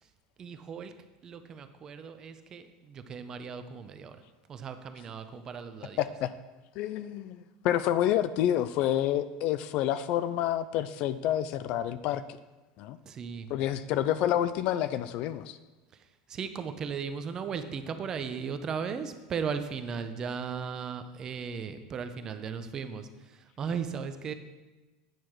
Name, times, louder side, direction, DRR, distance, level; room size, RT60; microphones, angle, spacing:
voice 1, 0.4-0.9 1.2-4.2 4.5-6.0 13.1-13.5 15.9-24.3, right 6 dB, 20° right, 9 dB, 0.5 m, -37 dB
voice 2, 6.0-6.3 6.8-12.2 12.8-13.0 13.5-15.6, left 11 dB, 45° left, 14 dB, 0.3 m, -28 dB
9.1 x 5.9 x 4.8 m, 1.2 s
supercardioid pair, 170°, 3 cm